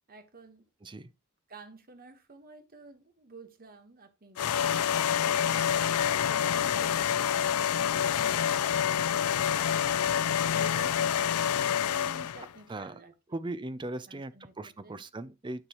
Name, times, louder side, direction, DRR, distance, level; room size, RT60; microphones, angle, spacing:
voice 1, 0.1-0.7 1.5-5.7 6.2-9.4 10.5-13.5 14.1-15.0, right 3 dB, 40° right, 1.3 m, -52 dB
sound 1, 4.4-12.5, left 9 dB, 80° left, 0.4 m, -27 dB
voice 2, 13.3-15.7, right 2 dB, 20° right, 0.5 m, -38 dB
10.0 x 6.0 x 3.0 m
head